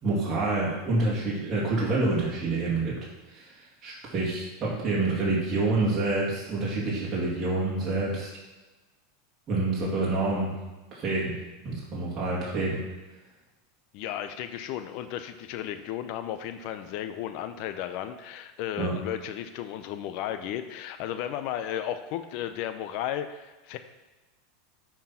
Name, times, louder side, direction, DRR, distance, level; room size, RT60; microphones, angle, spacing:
voice 1, 0.0-3.0 3.3-3.5 3.8-8.3 9.5-10.5 10.9-11.4 11.6-12.8 18.8-18.9, right 2 dB, 30° right, -6 dB, 2.8 m, -27 dB
voice 2, 13.9-23.8, left 11 dB, 55° left, 9 dB, 0.6 m, -34 dB
9.2 x 4.6 x 5.6 m, 1.2 s
supercardioid pair, 130°, 0 cm